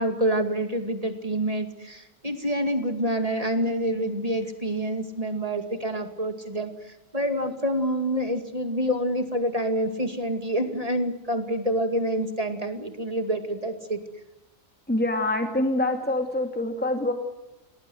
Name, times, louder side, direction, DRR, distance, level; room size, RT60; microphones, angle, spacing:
voice 1, 0.0-14.0, right 1 dB, 30° right, 7 dB, 2.5 m, -27 dB
voice 2, 14.9-17.1, left 1 dB, 5° left, 5 dB, 2.4 m, -25 dB
28.5 x 19.0 x 7.9 m, 0.95 s
omnidirectional pair, 1.3 m